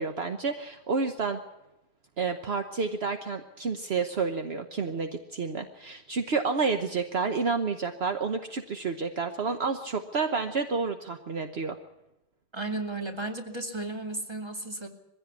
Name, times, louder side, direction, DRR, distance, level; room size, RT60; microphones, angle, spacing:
voice 1, 0.0-1.4 2.2-11.8, right 4 dB, 45° right, 6 dB, 0.8 m, -30 dB
voice 2, 12.5-14.9, right 2 dB, 15° right, 4 dB, 2.2 m, -34 dB
22.0 x 16.0 x 8.4 m, 0.94 s
omnidirectional pair, 2.3 m